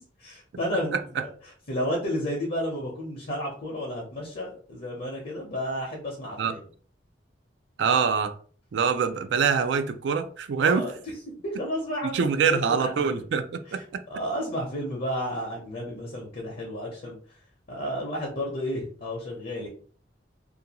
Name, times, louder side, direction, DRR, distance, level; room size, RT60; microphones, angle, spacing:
voice 1, 0.2-6.6 10.6-10.9 11.4-13.2 13.7-17.4 17.7-19.7, equal, 55° left, 0.7 m, -32 dB
voice 2, 7.8-8.3 8.7-10.9 12.0-14.0, right 6 dB, 70° right, 0.3 m, -24 dB
2.5 x 2.2 x 2.8 m
head